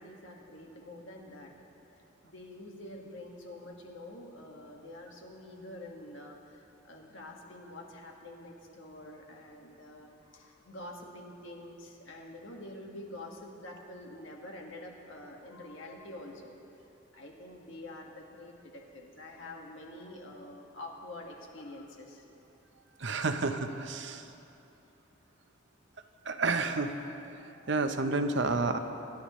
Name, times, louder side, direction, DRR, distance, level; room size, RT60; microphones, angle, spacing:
voice 1, 0.0-1.5 2.2-16.6 17.1-22.2, left 1 dB, 70° left, 0 dB, 1.7 m, -47 dB
voice 2, 23.0-24.2 26.3-26.9 27.7-28.8, right 3 dB, 60° right, 7 dB, 0.8 m, -30 dB
26.0 x 11.5 x 3.2 m, 2.8 s
head